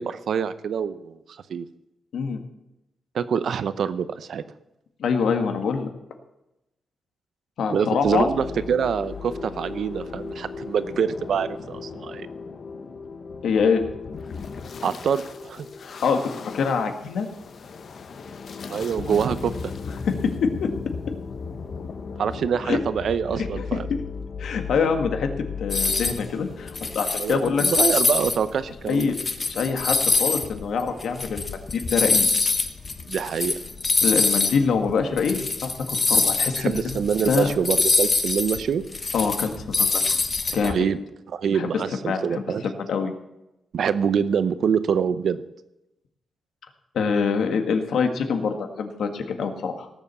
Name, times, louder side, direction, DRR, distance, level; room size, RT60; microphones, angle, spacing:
voice 1, 0.0-1.7 3.1-4.4 7.7-12.3 14.8-15.7 18.7-19.7 22.2-23.9 27.2-29.1 33.1-33.5 36.6-38.8 40.6-41.0 41.3-42.7 43.7-45.4, right 7 dB, 60° right, 13 dB, 0.8 m, -25 dB
voice 2, 5.0-5.9 7.6-8.3 13.4-13.8 15.8-17.3 20.1-20.2 20.4-20.7 22.7-22.8 23.6-23.8 24.4-25.3 25.6-27.6 28.9-29.2 29.5-32.3 34.0-37.0 37.3-37.5 39.1-40.2 40.5-40.8 41.5-41.7 42.1-42.4 42.8-43.1 46.9-49.9, left 5 dB, 75° left, 6 dB, 1.7 m, -25 dB
sound 1, 8.0-27.0, left 5 dB, 50° left, 1.0 m, -36 dB
sound 2, 25.7-26.2 26.7-28.4 28.8-34.6 34.9-35.0 35.2-40.7, left 3 dB, 30° left, 1.1 m, -24 dB
18.0 x 7.3 x 6.9 m, 0.91 s
wide cardioid pair, 145°, 0 cm